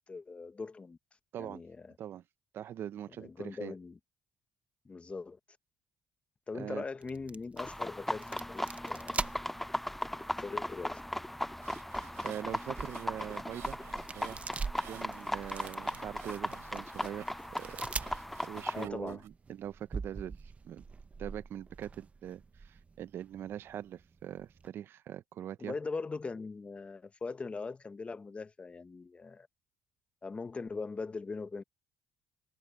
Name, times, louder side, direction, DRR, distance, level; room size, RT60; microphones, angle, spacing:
voice 1, 0.1-1.0 1.4-1.9 3.2-4.0 4.8-5.4 6.5-9.5 10.4-11.0 18.7-19.2 25.6-29.5 30.2-31.6, left 4 dB, 30° left, 1.3 m, -41 dB
voice 2, 2.5-3.7 6.5-6.8 12.2-13.8 14.1-14.4 14.9-17.9 18.4-20.8 21.2-25.7, right 10 dB, 65° right, 0.7 m, -42 dB
sound 1, 7.0-24.7, right 4 dB, 30° right, 0.9 m, -45 dB
sound 2, 7.6-18.9, left 1 dB, 5° left, 0.5 m, -37 dB
sound 3, 11.4-19.3, right 14 dB, 80° right, 4.8 m, -54 dB
supercardioid pair, 80°, 4 cm